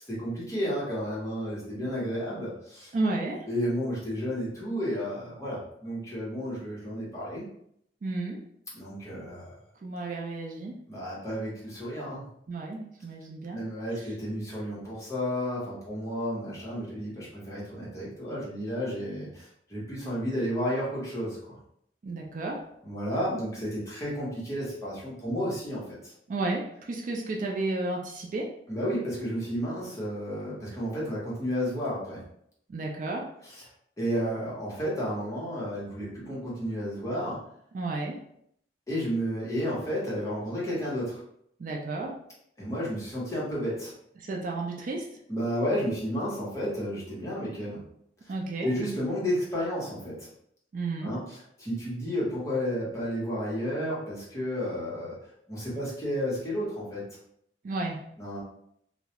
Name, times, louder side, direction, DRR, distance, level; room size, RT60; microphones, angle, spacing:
voice 1, 0.1-2.9 3.5-7.5 8.7-9.6 10.9-12.2 13.5-21.6 22.8-26.1 28.7-32.2 34.0-37.4 38.9-41.2 42.6-43.9 45.3-47.8 48.6-50.3 51.0-51.2 51.6-55.1 55.5-57.0 58.2-58.4, equal, 15° left, -7 dB, 0.9 m, -32 dB
voice 2, 2.9-3.5 8.0-8.4 9.8-10.8 12.5-13.6 13.9-14.1 22.0-22.7 26.3-28.6 32.7-33.3 37.7-38.2 41.6-42.2 44.2-45.2 48.3-48.7 50.7-51.1 57.6-58.1, right 2 dB, 45° right, 0 dB, 0.3 m, -32 dB
2.3 x 2.0 x 2.8 m, 0.71 s
head